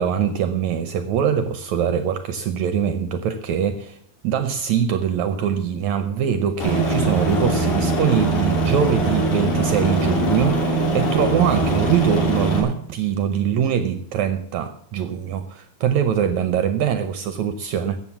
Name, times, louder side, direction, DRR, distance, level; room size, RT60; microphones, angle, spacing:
voice 1, 0.0-4.0 4.2-18.0, right 8 dB, 75° right, 9 dB, 2.0 m, -23 dB
Aircraft, 6.6-12.6, right 2 dB, 70° left, 4.6 m, -21 dB
14.5 x 8.3 x 7.3 m, 0.66 s
omnidirectional pair, 3.6 m